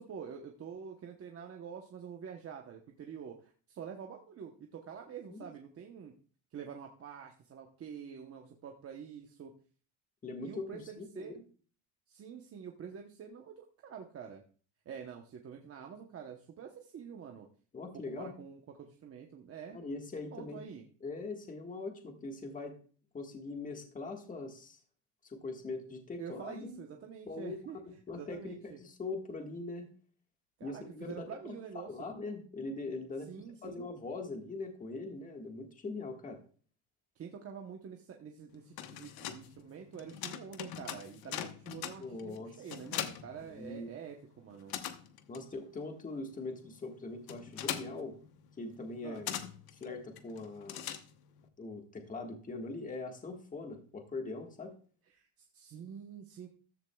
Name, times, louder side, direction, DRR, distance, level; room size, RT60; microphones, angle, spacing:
voice 1, 0.0-6.1 6.5-9.5 10.4-11.3 12.1-14.4 14.9-17.5 17.9-19.8 20.3-20.8 26.2-27.8 28.1-28.8 30.6-32.1 33.3-33.9 37.2-44.7 49.0-49.3 55.2-56.5, right 7 dB, 30° right, 3 dB, 1.0 m, -47 dB
voice 2, 10.2-11.4 17.7-18.3 19.7-20.6 21.0-22.8 23.1-24.8 25.2-26.8 27.3-27.6 27.8-29.9 30.6-31.5 31.8-33.3 33.6-36.4 42.0-42.6 43.5-43.9 45.3-48.1 48.6-49.4 49.7-50.8 51.6-54.7, left 3 dB, 15° left, 3 dB, 1.6 m, -42 dB
sound 1, 38.5-44.1 44.4-51.5, left 11 dB, 50° left, 1.0 m, -42 dB
14.0 x 10.5 x 2.3 m, 0.42 s
cardioid pair, 145°, 47 cm